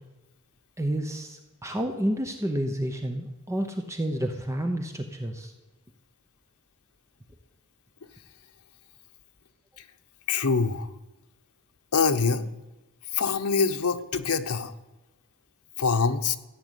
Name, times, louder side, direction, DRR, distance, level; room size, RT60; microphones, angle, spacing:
voice 1, 0.8-5.5, right 1 dB, 15° right, 5 dB, 0.9 m, -30 dB
voice 2, 10.3-10.9 11.9-12.5 13.1-14.7 15.8-16.4, left 5 dB, 80° left, 7 dB, 0.9 m, -24 dB
14.5 x 9.0 x 8.2 m, 1.1 s
head